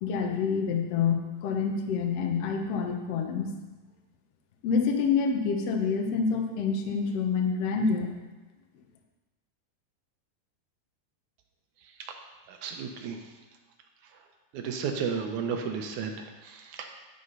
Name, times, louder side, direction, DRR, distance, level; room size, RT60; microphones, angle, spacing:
voice 1, 0.0-3.5 4.6-8.1, left 5 dB, 70° left, 3 dB, 1.5 m, -27 dB
voice 2, 12.5-13.2 14.5-16.9, right 6 dB, 75° right, 4 dB, 1.8 m, -33 dB
11.0 x 7.1 x 5.4 m, 1.2 s
omnidirectional pair, 4.2 m